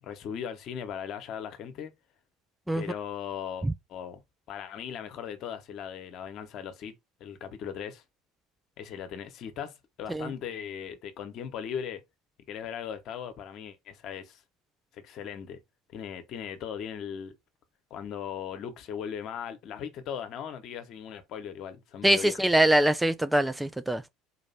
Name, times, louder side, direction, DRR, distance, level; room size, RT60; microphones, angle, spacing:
voice 1, 0.0-1.9 2.7-4.2 4.5-6.9 7.2-8.0 8.8-12.0 12.5-14.4 14.9-15.6 15.9-17.3 17.9-22.4, left 8 dB, 50° left, 1.0 m, -38 dB
voice 2, 22.0-24.0, right 1 dB, 5° right, 0.4 m, -23 dB
4.2 x 2.9 x 4.2 m
figure-of-eight pair, 65°, 0 cm